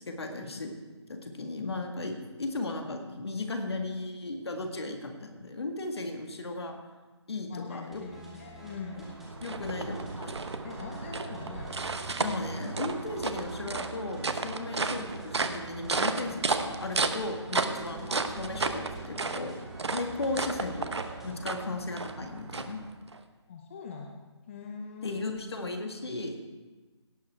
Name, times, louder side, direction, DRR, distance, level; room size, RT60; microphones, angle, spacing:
voice 1, 0.1-0.7 1.1-6.8 7.3-8.0 9.4-10.3 12.2-19.6 19.9-20.9 21.2-22.8 25.0-26.4, left 2 dB, 60° left, 4 dB, 1.9 m, -36 dB
voice 2, 7.5-9.0 9.9-10.0 10.6-11.8 17.9-18.1 23.5-25.4, left 5 dB, 25° left, 2 dB, 0.7 m, -42 dB
sound 1, 7.9-21.6, right 1 dB, ahead, 1.3 m, -49 dB
sound 2, 8.7-23.2, right 3 dB, 65° right, 0.9 m, -34 dB
sound 3, 9.0-9.3 9.6-11.9 12.2-14.6 14.9-17.2 17.5-19.8 20.1-22.5, right 5 dB, 20° right, 0.7 m, -50 dB
17.0 x 7.3 x 4.6 m, 1.3 s
figure-of-eight pair, 155°, 15 cm